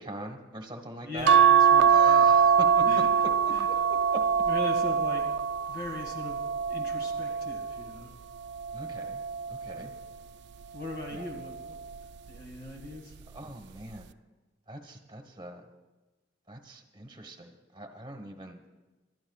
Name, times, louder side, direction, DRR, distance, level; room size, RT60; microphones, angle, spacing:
voice 1, 0.0-1.4 1.9-2.8 3.7-4.2 8.7-9.2 9.5-9.9 11.1-11.2 13.3-14.1 14.7-15.7 16.5-18.6, right 1 dB, 25° right, 4 dB, 1.3 m, -42 dB
voice 2, 1.0-2.4 2.9-3.1 3.5-3.7 4.5-5.2 5.7-6.4 6.7-8.1 9.7-10.0 10.7-11.8 12.3-13.1, left 2 dB, 55° left, 2 dB, 2.1 m, -39 dB
sound 1, 1.3-7.9 8.5-9.9 11.2-11.6 11.9-12.0, right 7 dB, 65° right, 0.3 m, -23 dB
25.0 x 12.0 x 2.4 m, 1.2 s
head